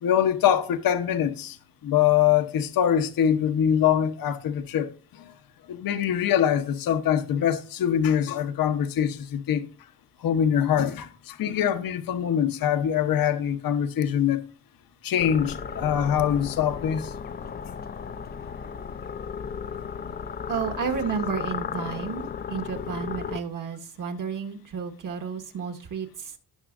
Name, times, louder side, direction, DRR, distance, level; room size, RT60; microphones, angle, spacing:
voice 1, 0.0-1.6 1.8-5.3 5.7-9.7 10.2-14.4 15.0-17.1, left 9 dB, 60° left, 0.9 m, -24 dB
sound 1, 15.2-23.4, left 6 dB, 25° left, 0.4 m, -35 dB
voice 2, 20.5-26.3, right 6 dB, 55° right, 1.5 m, -32 dB
17.5 x 6.2 x 2.5 m
cardioid pair, 135°, 38 cm